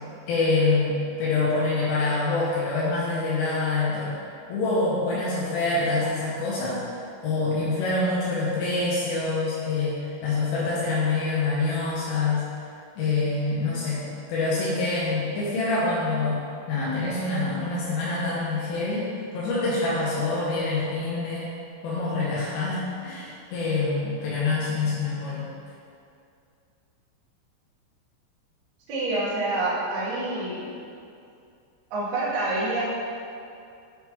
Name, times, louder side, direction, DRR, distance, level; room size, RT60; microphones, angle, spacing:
voice 1, 0.3-4.1 4.5-6.8 7.2-12.5 13.0-14.0 14.3-16.4 16.7-19.1 19.3-21.5 21.8-25.5, left 3 dB, 85° left, -8 dB, 3.4 m, -26 dB
voice 2, 28.9-30.7 31.9-32.8, right 2 dB, 80° right, -8 dB, 1.7 m, -27 dB
8.9 x 3.7 x 3.0 m, 2.5 s
omnidirectional pair, 5.7 m